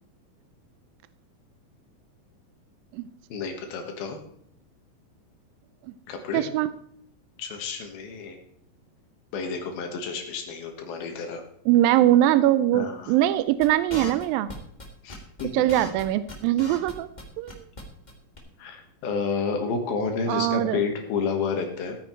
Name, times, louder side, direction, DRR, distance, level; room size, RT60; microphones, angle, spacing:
voice 1, 3.3-4.2 6.1-6.5 7.4-8.4 9.3-11.4 12.7-13.2 15.0-15.5 18.6-22.0, left 5 dB, 85° left, 3 dB, 3.4 m, -30 dB
voice 2, 6.3-6.7 11.7-14.5 15.5-17.1 17.4-17.6 20.3-20.8, right 13 dB, 80° right, 14 dB, 2.3 m, -22 dB
sound 1, 13.6-17.2 17.5-17.8 18.1-18.2 18.4-18.5, left 1 dB, 20° left, 1.1 m, -38 dB
15.5 x 9.1 x 4.5 m, 0.67 s
omnidirectional pair, 4.2 m